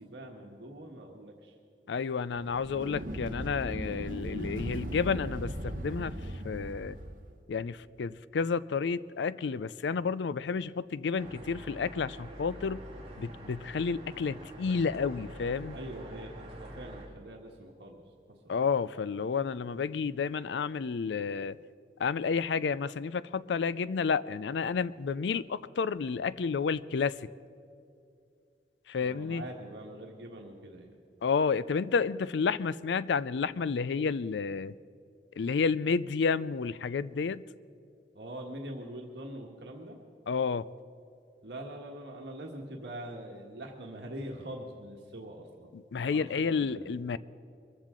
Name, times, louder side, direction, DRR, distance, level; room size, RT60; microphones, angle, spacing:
voice 1, 0.0-1.5 15.7-18.5 29.0-31.0 38.1-40.0 41.4-45.7 46.1-46.9, right 1 dB, 70° right, 0 dB, 1.5 m, -43 dB
voice 2, 1.9-6.1 6.4-7.0 7.5-12.8 13.2-15.7 18.5-21.6 22.0-27.2 28.9-29.4 31.2-34.7 35.4-37.4 40.3-40.7 45.7-47.2, left 5 dB, 80° left, 17 dB, 0.4 m, -31 dB
sound 1, 2.4-7.2, right 1 dB, 50° right, 1.2 m, -38 dB
sound 2, 11.2-17.1, right 1 dB, 35° right, 2.7 m, -46 dB
23.5 x 14.5 x 3.8 m, 2.5 s
head